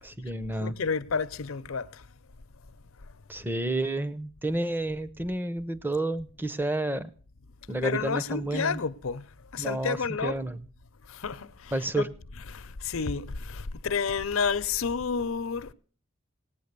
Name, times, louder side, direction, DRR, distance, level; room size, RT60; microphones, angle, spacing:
voice 1, 0.0-0.8 3.3-7.1 7.7-8.8 9.6-10.6 11.7-12.1, right 2 dB, 10° right, 0.6 m, -30 dB
voice 2, 0.6-2.0 7.8-9.3 9.5-10.4 11.1-12.0 12.5-15.7, left 5 dB, 80° left, 0.7 m, -30 dB
17.5 x 9.0 x 6.7 m
head